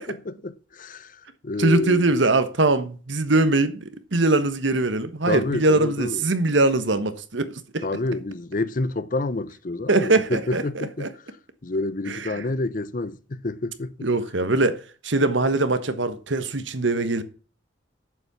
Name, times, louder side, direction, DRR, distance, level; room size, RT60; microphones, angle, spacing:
voice 1, 0.1-2.1 5.2-6.2 7.8-11.1 11.6-14.1, left 2 dB, 45° left, 0.7 m, -28 dB
voice 2, 1.6-7.8 9.9-11.1 12.1-12.4 14.0-17.2, right 2 dB, 75° right, 1.3 m, -22 dB
8.4 x 7.2 x 7.2 m
head